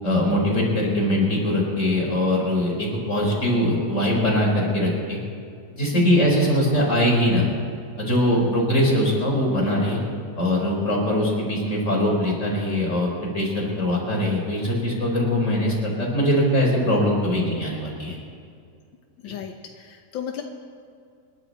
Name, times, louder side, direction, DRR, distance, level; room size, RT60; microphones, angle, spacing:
voice 1, 0.0-5.2 5.7-7.5 8.0-10.0 10.4-13.1 13.3-18.2 19.2-19.3, left 1 dB, 40° left, -3 dB, 4.7 m, -22 dB
voice 2, 5.9-6.3 8.3-8.6 19.2-20.4, left 9 dB, 90° left, 3 dB, 1.7 m, -35 dB
27.5 x 11.5 x 4.1 m, 2.3 s
omnidirectional pair, 2.0 m